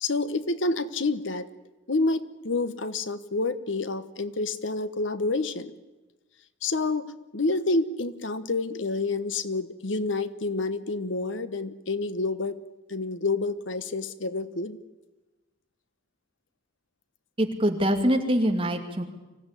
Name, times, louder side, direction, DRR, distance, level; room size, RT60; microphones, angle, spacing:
voice 1, 0.0-1.5 1.9-5.7 6.6-12.6 12.9-14.8, left 3 dB, 80° left, 13 dB, 1.2 m, -28 dB
voice 2, 17.4-19.0, equal, 25° right, 4 dB, 2.4 m, -24 dB
24.5 x 16.0 x 9.9 m, 1.1 s
head